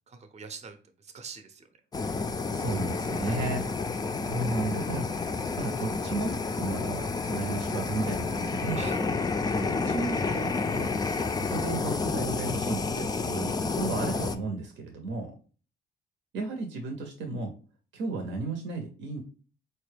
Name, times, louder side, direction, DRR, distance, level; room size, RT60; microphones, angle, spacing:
voice 1, 0.1-1.7 3.2-3.6 8.8-9.0, right 5 dB, 35° right, 7 dB, 0.6 m, -44 dB
Fire, 1.9-14.4, left 4 dB, 20° left, 0.3 m, -30 dB
voice 2, 2.5-3.7 4.0-5.1 5.6-8.9 9.6-10.9 11.4-15.3 16.3-17.5 17.9-19.2, right 3 dB, 70° right, 4 dB, 0.7 m, -34 dB
4.0 x 2.2 x 3.3 m, 0.37 s
cardioid pair, 90°, 20 cm